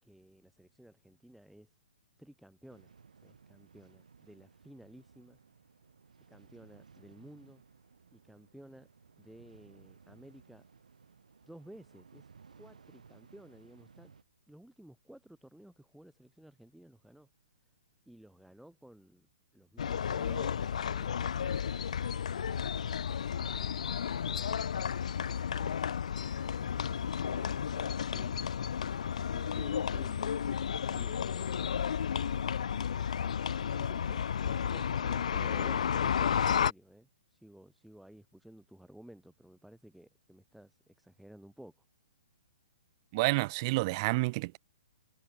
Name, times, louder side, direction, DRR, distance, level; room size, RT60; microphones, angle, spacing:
voice 1, 0.0-1.8 2.2-5.4 6.3-7.6 8.1-8.9 9.2-10.7 11.4-12.3 12.6-14.1 14.5-17.3 18.1-19.3 19.5-21.4 29.1-31.6 33.6-41.7, right 1 dB, ahead, 5.4 m, -55 dB
sound 1, 2.7-14.2, right 5 dB, 70° right, 5.5 m, -60 dB
sound 2, 19.8-36.7, left 8 dB, 60° left, 0.5 m, -32 dB
voice 2, 43.1-44.6, right 24 dB, 35° right, 0.6 m, -29 dB
figure-of-eight pair, 120°, 4 cm